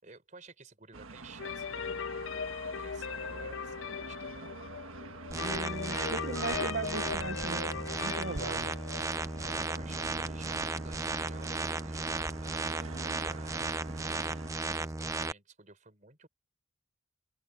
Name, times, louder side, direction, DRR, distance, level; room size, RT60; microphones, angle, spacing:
voice 1, 0.0-4.6 5.9-6.7 9.2-16.3, right 3 dB, 35° right, 4.4 m, -54 dB
sound 1, 0.9-14.5, right 3 dB, 85° right, 1.5 m, -47 dB
sound 2, 1.4-11.1, left 6 dB, 65° left, 0.5 m, -40 dB
sound 3, 5.3-15.3, right 3 dB, 15° right, 0.6 m, -35 dB
voice 2, 5.3-7.7 8.0-8.8, right 3 dB, 55° right, 0.8 m, -38 dB
head